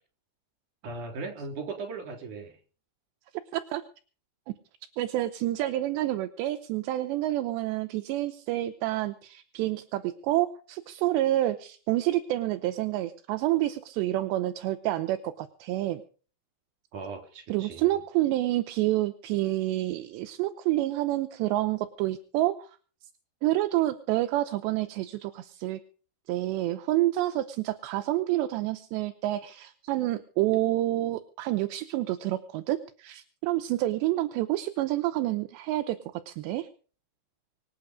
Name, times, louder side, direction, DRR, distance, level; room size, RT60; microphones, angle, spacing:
voice 1, 0.8-2.6 16.9-17.9, right 4 dB, 50° right, 3 dB, 4.7 m, -38 dB
voice 2, 5.0-16.0 17.5-22.7 23.4-25.8 26.3-36.0 36.3-36.7, right 15 dB, 80° right, 8 dB, 3.0 m, -28 dB
25.5 x 8.9 x 5.1 m, 0.41 s
omnidirectional pair, 5.1 m